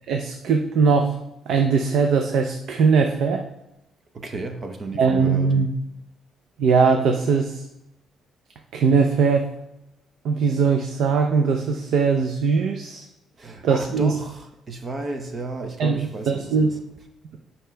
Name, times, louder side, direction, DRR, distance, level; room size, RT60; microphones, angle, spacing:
voice 1, 0.1-1.2 1.5-3.4 5.0-5.7 6.6-7.6 8.7-9.5 10.2-13.0 13.6-14.1 15.8-16.7, right 5 dB, 65° right, 4 dB, 0.6 m, -20 dB
voice 2, 4.1-5.5 13.4-16.8, right 2 dB, 25° right, 6 dB, 0.6 m, -33 dB
9.4 x 5.5 x 3.4 m, 0.87 s
cardioid pair, 170°, 0 cm